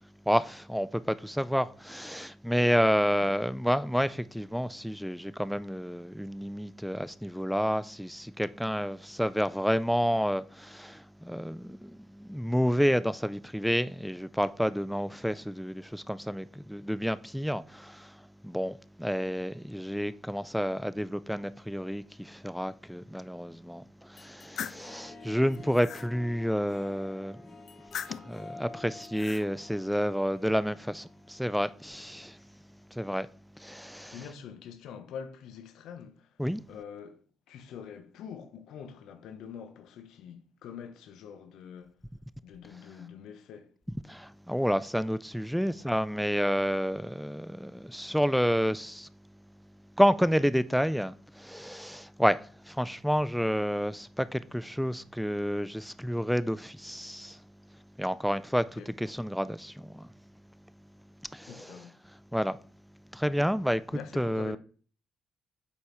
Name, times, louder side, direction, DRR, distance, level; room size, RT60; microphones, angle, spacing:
voice 1, 0.3-27.6 28.2-32.4 32.9-33.3 33.6-34.2 36.4-36.6 44.0-49.1 50.0-57.4 58.0-60.1 61.3-61.8 62.3-62.6 63.1-64.6, equal, ahead, 0.3 m, -30 dB
voice 2, 3.0-3.4 34.1-36.3 36.7-41.9 42.4-43.7 58.8-58.9 61.5-61.9 63.9-64.6, left 7 dB, 85° left, 0.9 m, -45 dB
sound 1, 24.2-24.9 25.4-26.1 27.7-28.4 29.0-29.5, left 8 dB, 65° left, 0.4 m, -40 dB
Harp, 24.6-32.1, left 3 dB, 45° left, 1.9 m, -50 dB
8.1 x 5.4 x 3.1 m
cardioid pair, 90°, 0 cm